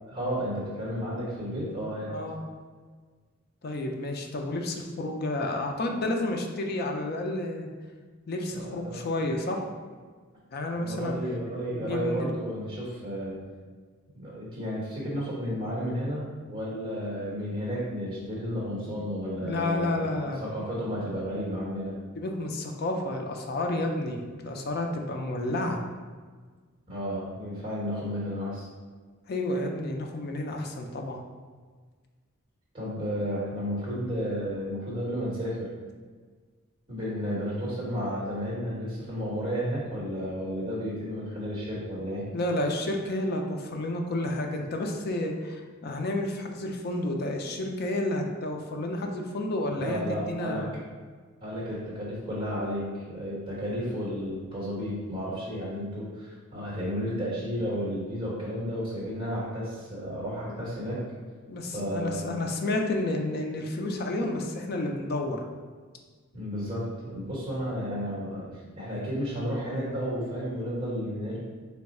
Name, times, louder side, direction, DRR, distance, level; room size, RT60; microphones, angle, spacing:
voice 1, 0.1-2.1 8.5-9.0 10.7-13.4 14.1-21.9 26.9-28.6 32.7-35.7 36.9-42.3 49.8-50.7 51.4-61.0 61.7-62.3 66.3-68.5 68.7-71.4, equal, 25° right, -6 dB, 1.2 m, -32 dB
voice 2, 2.1-2.4 3.6-7.7 8.3-9.6 10.5-11.2 11.8-12.3 18.9-19.0 19.4-20.4 22.1-25.8 29.3-31.2 42.3-50.8 60.5-60.6 61.5-65.4, left 1 dB, 50° left, 2 dB, 0.4 m, -30 dB
3.3 x 2.3 x 4.1 m, 1.5 s
head